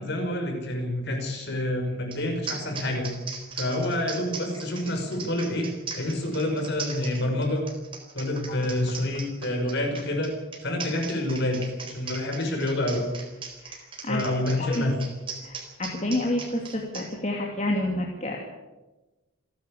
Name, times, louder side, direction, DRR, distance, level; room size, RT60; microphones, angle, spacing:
voice 1, 0.0-3.1 3.6-5.7 5.9-7.6 8.1-10.3 10.6-13.0 14.1-15.0, left 1 dB, 50° left, 3 dB, 6.0 m, -28 dB
sound 1, 2.1-2.2 2.5-17.1, right 5 dB, 25° right, 4.1 m, -38 dB
voice 2, 13.6-14.2 14.5-14.9 15.4-18.4, left 1 dB, 30° left, 0 dB, 2.7 m, -29 dB
28.5 x 11.5 x 8.7 m, 1.1 s
head